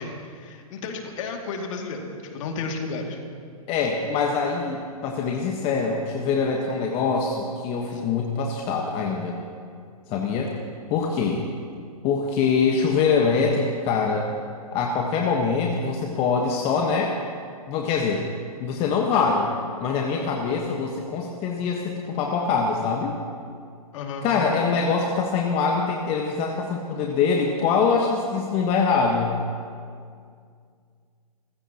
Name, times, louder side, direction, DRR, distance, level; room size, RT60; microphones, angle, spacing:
voice 1, 0.0-3.2 7.9-8.0 23.9-24.3, left 4 dB, 55° left, 2 dB, 2.4 m, -33 dB
voice 2, 3.7-9.4 10.1-10.5 10.9-11.5 12.0-14.3 14.7-17.2 17.7-18.3 18.6-19.5 19.8-23.2 24.2-29.4, left 5 dB, 30° left, 0 dB, 1.3 m, -24 dB
27.5 x 15.5 x 3.0 m, 2.2 s
hypercardioid pair, 125°, 20 cm